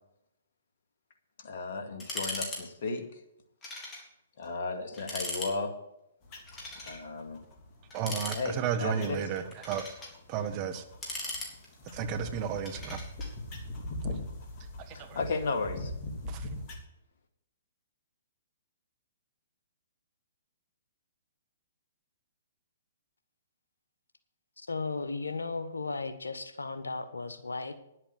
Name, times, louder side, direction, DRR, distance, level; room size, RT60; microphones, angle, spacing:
voice 1, 1.4-3.2 4.4-5.8 6.8-7.4 8.3-9.2 14.9-15.9, left 3 dB, 55° left, 5 dB, 2.1 m, -34 dB
sound 1, 2.0-2.6 2.9-3.0 3.6-4.0 4.4-4.5 4.9-5.5 6.5-7.0 7.9-8.8 9.4-10.1 10.8-11.9 12.6-13.3, left 2 dB, 20° left, 3.9 m, -38 dB
sound 2, 6.2-16.8, left 1 dB, 35° left, 2.8 m, -42 dB
voice 2, 7.9-10.0 10.3-10.8 11.9-13.0 14.1-14.2 14.8-15.2 16.3-16.5, right 8 dB, 35° right, 10 dB, 1.3 m, -33 dB
voice 3, 24.7-27.8, left 3 dB, 85° left, 10 dB, 1.3 m, -35 dB
10.5 x 8.0 x 7.9 m, 0.82 s
figure-of-eight pair, 125°, 0 cm